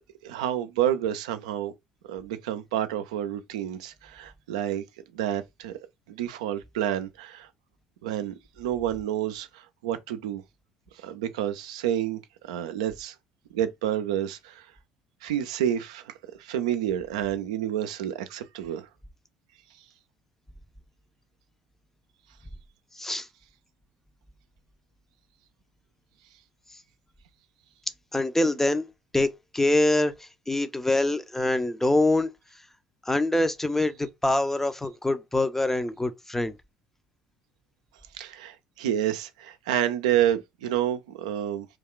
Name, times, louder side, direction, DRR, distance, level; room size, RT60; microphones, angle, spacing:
voice 1, 0.2-1.7 2.1-4.8 5.1-5.7 6.1-7.5 8.0-10.4 11.0-13.1 13.5-14.7 15.2-18.9 38.1-41.7, right 11 dB, 80° right, 0.4 m, -29 dB
voice 2, 28.1-28.9 29.1-30.1 30.5-32.3 33.1-36.5, left 2 dB, 10° left, 0.5 m, -24 dB
2.3 x 2.2 x 3.6 m
hypercardioid pair, 65°, 3 cm